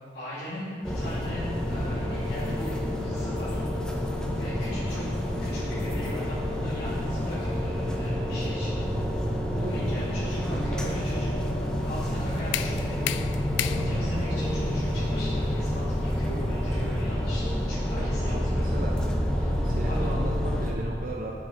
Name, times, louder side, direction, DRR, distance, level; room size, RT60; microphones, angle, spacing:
voice 1, 0.1-2.7 3.0-3.6 4.3-5.1 5.4-8.8 9.5-11.3 11.8-13.1 13.6-18.9 19.4-20.1, equal, 60° left, -12 dB, 2.3 m, -37 dB
sound 1, 0.8-20.7, equal, 5° left, 0.7 m, -28 dB
sound 2, 11.8-17.6, left 10 dB, 85° left, 0.3 m, -36 dB
voice 2, 18.0-19.0 19.6-21.3, right 2 dB, 50° right, -1 dB, 0.6 m, -37 dB
8.4 x 7.1 x 3.8 m, 2.1 s
head